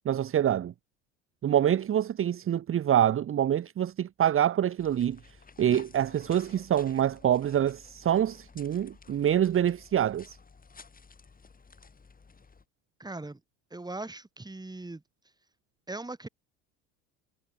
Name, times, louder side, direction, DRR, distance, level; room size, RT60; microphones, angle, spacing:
voice 1, 0.0-0.7 1.4-10.4, right 10 dB, 35° right, 1.1 m, -26 dB
sound 1, 4.8-12.6, left 4 dB, 20° left, 7.6 m, -53 dB
voice 2, 13.0-13.4 13.7-15.0 15.9-16.3, right 2 dB, 10° right, 4.3 m, -39 dB
hypercardioid pair, 85°, 38 cm